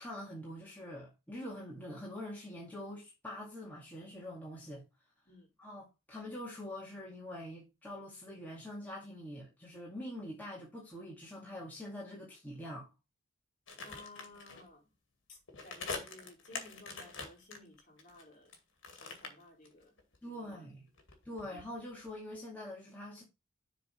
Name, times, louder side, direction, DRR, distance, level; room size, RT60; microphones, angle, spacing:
voice 1, 0.0-4.8 5.6-12.9 20.2-20.9 21.3-23.2, left 1 dB, 10° left, 2.1 m, -45 dB
sound 1, 13.7-14.7 15.5-18.6 18.8-20.2 20.4-22.1 22.3-22.4, left 4 dB, 60° left, 2.1 m, -44 dB
voice 2, 13.8-14.8 15.3-18.5 19.0-20.0 20.3-20.7, left 2 dB, 40° left, 3.8 m, -56 dB
7.0 x 3.8 x 6.2 m
head